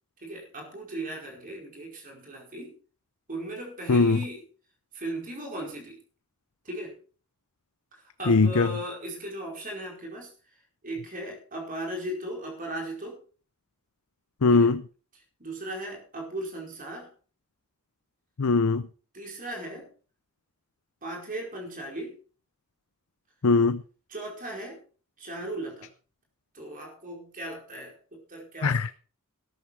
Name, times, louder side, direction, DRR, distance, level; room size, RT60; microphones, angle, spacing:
voice 1, 0.2-2.8 3.3-4.4 4.9-6.0 6.6-7.0 7.9-13.2 14.5-14.7 15.1-17.1 19.1-19.9 21.0-22.2 24.1-24.8 25.2-25.9 26.5-28.8, right 1 dB, 40° right, 4.9 m, -37 dB
voice 2, 3.9-4.2 8.3-8.7 14.4-14.8 18.4-18.9 23.4-23.8 28.6-28.9, left 4 dB, 70° left, 0.6 m, -21 dB
14.0 x 12.0 x 4.7 m
head